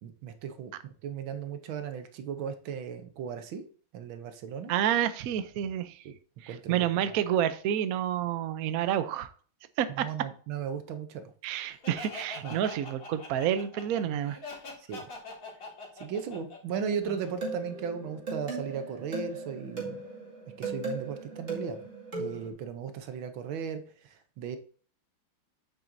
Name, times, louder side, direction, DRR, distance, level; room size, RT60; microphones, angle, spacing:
voice 1, 0.0-3.7 3.9-4.7 6.0-6.1 6.5-7.1 9.9-11.3 12.4-12.6 14.8-15.0 16.0-20.0 20.6-21.8 22.2-24.6, right 7 dB, 70° right, 9 dB, 1.6 m, -36 dB
voice 2, 4.7-6.0 6.4-9.3 9.8-10.1 11.4-14.4, right 10 dB, 90° right, 12 dB, 0.7 m, -29 dB
Laughter, 11.8-17.5, left 3 dB, 40° left, 2.3 m, -43 dB
sound 1, 17.0-22.5, right 3 dB, 30° right, 2.5 m, -37 dB
8.8 x 7.5 x 2.7 m, 0.43 s
omnidirectional pair, 2.4 m